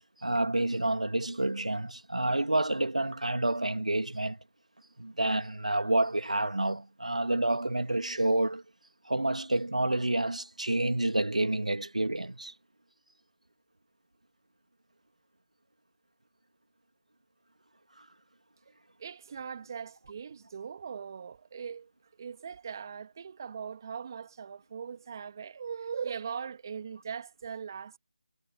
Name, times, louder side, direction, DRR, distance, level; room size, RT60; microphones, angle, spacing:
voice 1, 0.2-4.4 5.0-8.6 9.0-12.5 18.0-18.1, right 2 dB, 80° right, 2.6 m, -29 dB
voice 2, 19.0-21.9 22.2-28.0, right 7 dB, 30° right, 2.2 m, -40 dB
figure-of-eight pair, 160°, 4 cm